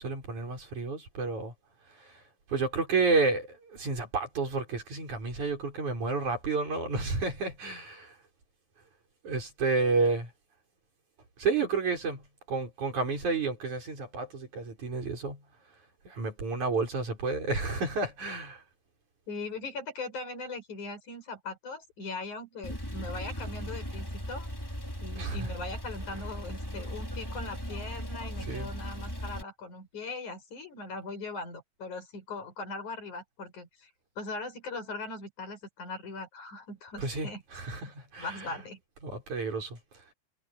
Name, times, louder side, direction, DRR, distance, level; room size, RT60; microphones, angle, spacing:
voice 1, 0.0-1.5 2.5-8.1 9.2-10.3 11.4-12.2 12.5-15.4 16.1-18.6 25.2-25.5 28.4-28.7 37.0-38.5 39.0-39.8, right 4 dB, 80° right, 7.9 m, -30 dB
voice 2, 19.3-24.5 25.0-33.9 34.2-37.4 38.2-38.8, left 3 dB, 85° left, 8.9 m, -40 dB
Male speech man speaking / Car / Idling, 22.6-29.4, equal, 5° left, 5.2 m, -38 dB
omnidirectional pair, 3.3 m